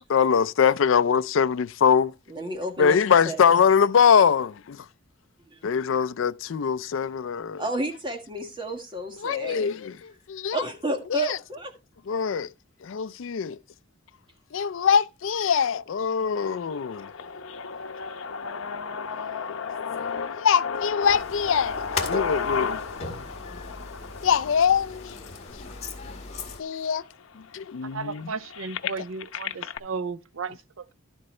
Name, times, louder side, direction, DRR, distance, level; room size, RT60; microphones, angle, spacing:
voice 1, 0.1-2.1 2.8-4.8 5.6-7.6 9.2-10.6 11.1-11.4 12.1-12.5 12.8-13.6 14.5-17.1 20.4-22.8 24.2-25.2 26.6-27.0 27.4-28.3, left 7 dB, 65° left, 0.4 m, -23 dB
voice 2, 2.3-3.0 3.2-3.4 5.5-5.6 7.6-9.7 10.5-11.7, right 1 dB, 25° right, 1.7 m, -31 dB
sound 1, 16.3-26.3 27.0-27.1 27.3-29.8, left 5 dB, 85° left, 0.8 m, -34 dB
sound 2, 21.0-26.6, left 4 dB, 35° left, 1.9 m, -37 dB
voice 3, 27.8-30.9, right 4 dB, 80° right, 0.6 m, -34 dB
12.0 x 7.9 x 3.2 m
head